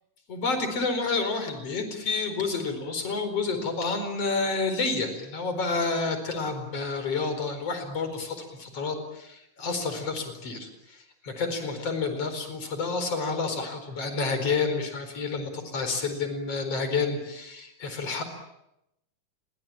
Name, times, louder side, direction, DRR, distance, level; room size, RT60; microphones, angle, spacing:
voice 1, 0.3-18.2, left 4 dB, 45° left, 8 dB, 5.5 m, -29 dB
30.0 x 23.0 x 8.7 m, 0.85 s
omnidirectional pair, 3.8 m